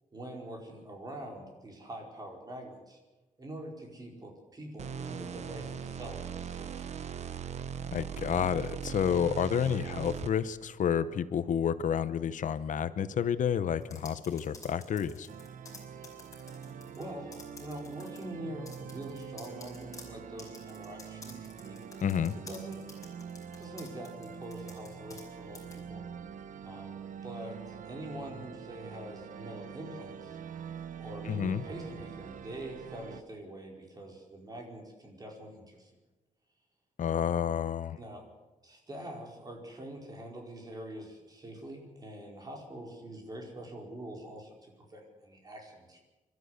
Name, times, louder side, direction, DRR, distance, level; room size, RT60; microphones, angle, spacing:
voice 1, 0.1-3.0 3.4-6.9 17.0-21.8 22.3-22.8 23.6-26.0 26.6-30.4 31.0-35.9 37.2-37.4 38.0-38.2 38.6-46.0, right 1 dB, 30° right, 1 dB, 4.8 m, -45 dB
sound 1, 4.8-10.5, right 7 dB, 55° right, 1.0 m, -39 dB
voice 2, 7.9-15.3 22.0-22.4 31.2-31.6 37.0-38.0, left 8 dB, 75° left, 13 dB, 0.9 m, -30 dB
sound 2, 13.8-17.0 17.3-18.2 18.6-25.3 25.5-25.8, left 3 dB, 25° left, 5.3 m, -51 dB
sound 3, 15.3-33.2, right 7 dB, 85° right, 1.0 m, -45 dB
25.5 x 13.0 x 8.1 m, 1.1 s
wide cardioid pair, 160°, 13 cm